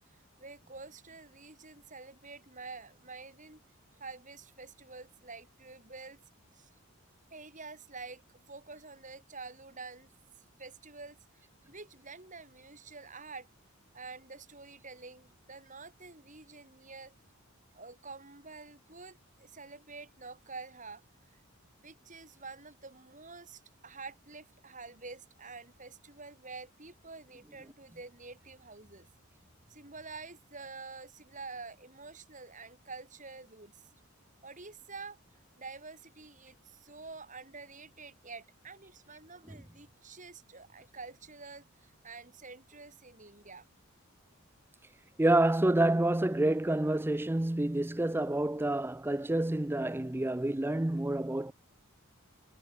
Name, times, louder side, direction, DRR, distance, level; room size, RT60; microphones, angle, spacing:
voice 1, 0.4-3.6 4.0-6.2 6.5-6.7 7.3-10.1 10.6-13.5 13.9-17.1 17.7-21.0 21.3-21.4 21.8-29.1 29.7-33.8 34.4-35.2 35.6-43.7, right 4 dB, 35° right, 7.9 m, -48 dB
voice 2, 45.2-51.5, right 1 dB, 10° right, 0.4 m, -28 dB
head